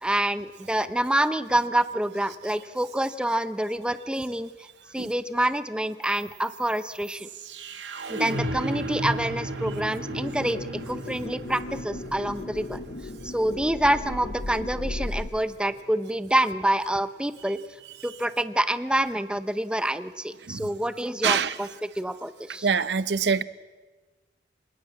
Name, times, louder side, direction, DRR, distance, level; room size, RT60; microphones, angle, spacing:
voice 1, 0.0-4.5 4.9-7.3 8.1-10.6 10.9-12.8 13.2-17.6 18.0-22.7, right 1 dB, 5° right, 12 dB, 0.8 m, -27 dB
sound 1, 6.0-16.1, right 1 dB, 85° right, 2.1 m, -36 dB
sound 2, 10.0-15.3, left 2 dB, 50° left, 1.0 m, -36 dB
voice 2, 21.2-21.5 22.6-23.4, right 6 dB, 65° right, 16 dB, 0.7 m, -24 dB
26.0 x 19.0 x 8.6 m, 1.3 s
head